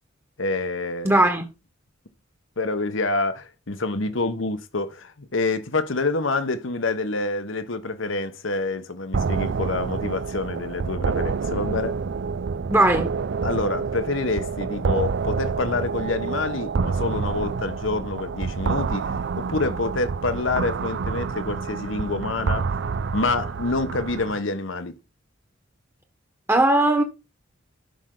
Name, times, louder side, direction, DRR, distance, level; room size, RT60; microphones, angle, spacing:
voice 1, 0.4-1.2 2.6-12.0 13.4-19.1 19.4-22.7 23.1-25.0, left 3 dB, 70° left, 1.2 m, -27 dB
voice 2, 1.0-1.4 12.7-13.1 26.5-27.0, right 1 dB, 10° right, 1.2 m, -18 dB
sound 1, 9.1-24.4, right 5 dB, 60° right, 0.4 m, -28 dB
11.5 x 5.8 x 3.9 m
head